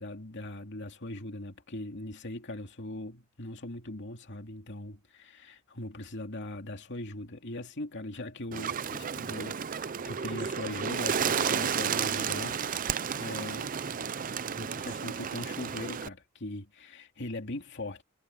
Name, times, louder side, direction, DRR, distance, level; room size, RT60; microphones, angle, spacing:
voice 1, 0.0-12.6 13.2-13.7 14.6-18.0, left 1 dB, 55° left, 2.5 m, -40 dB
Bird, 8.5-16.1, right 7 dB, 40° right, 0.5 m, -32 dB
head